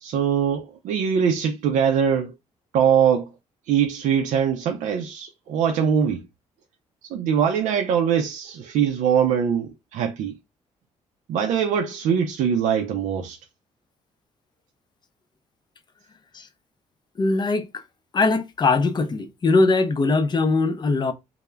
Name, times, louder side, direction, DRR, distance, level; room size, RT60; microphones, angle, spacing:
voice 1, 0.0-2.3 2.7-3.3 3.7-6.2 7.0-10.4 11.3-13.4, right 8 dB, 75° right, 0.4 m, -22 dB
voice 2, 17.2-17.7 18.1-21.1, left 3 dB, 35° left, 0.5 m, -21 dB
2.2 x 2.0 x 3.2 m
cardioid pair, 75°, 13 cm